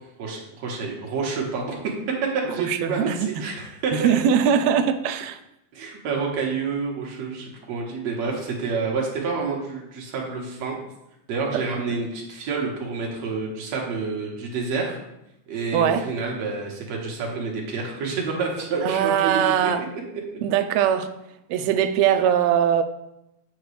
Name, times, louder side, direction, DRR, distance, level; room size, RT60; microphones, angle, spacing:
voice 1, 0.2-1.8 2.2-4.1 5.7-10.8 11.3-15.0 15.5-19.7 20.1-20.2, right 4 dB, 65° right, 2.2 m, -28 dB
voice 2, 2.6-3.3 3.9-5.4 11.5-11.7 15.7-16.1 18.8-19.8 20.4-21.1 21.5-22.8, right 8 dB, 90° right, 1.5 m, -21 dB
7.9 x 5.9 x 3.2 m
omnidirectional pair, 3.6 m